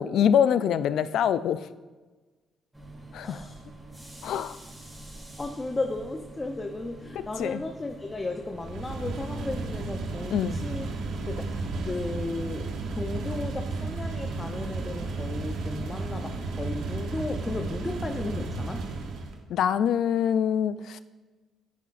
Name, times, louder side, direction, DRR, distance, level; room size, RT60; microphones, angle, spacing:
voice 1, 0.0-1.7 3.1-3.4 4.2-4.6 7.2-7.6 10.3-10.6 19.5-21.0, left 8 dB, 75° left, 14 dB, 0.3 m, -25 dB
sound 1, 2.7-8.7, right 2 dB, 10° right, 2.8 m, -46 dB
voice 2, 3.2-3.6 5.4-18.8, left 2 dB, 25° left, 4 dB, 0.6 m, -35 dB
sound 2, 8.6-19.4, right 3 dB, 80° right, 1.0 m, -33 dB
9.8 x 8.4 x 2.5 m, 1.3 s
cardioid pair, 90°, 0 cm